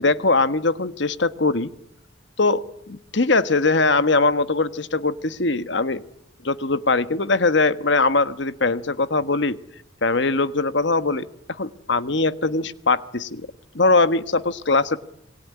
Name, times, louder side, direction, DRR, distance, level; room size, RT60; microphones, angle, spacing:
voice 1, 0.0-1.7 2.4-6.0 6.4-9.6 10.0-11.2 11.6-13.5 13.7-15.0, left 3 dB, 60° left, 13 dB, 1.3 m, -21 dB
27.0 x 23.0 x 9.7 m, 0.76 s
head